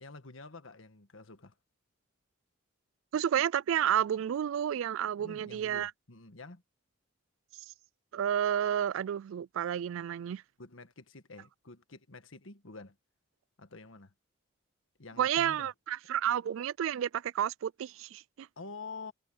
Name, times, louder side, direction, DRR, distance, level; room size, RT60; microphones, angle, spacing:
voice 1, 0.0-1.5 5.2-6.6 10.6-13.0 13.6-14.1 15.0-15.7 18.6-19.1, left 3 dB, 75° left, 1.5 m, -48 dB
voice 2, 3.1-5.9 8.1-10.4 15.2-18.5, right 9 dB, 75° right, 0.3 m, -31 dB
head